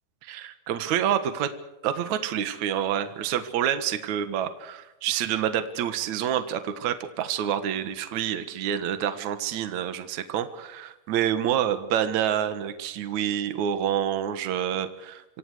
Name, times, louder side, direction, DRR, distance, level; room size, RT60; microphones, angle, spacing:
voice 1, 0.2-1.5 1.8-15.2, right 10 dB, 65° right, 10 dB, 2.7 m, -27 dB
26.5 x 25.5 x 4.9 m, 0.93 s
omnidirectional pair, 3.9 m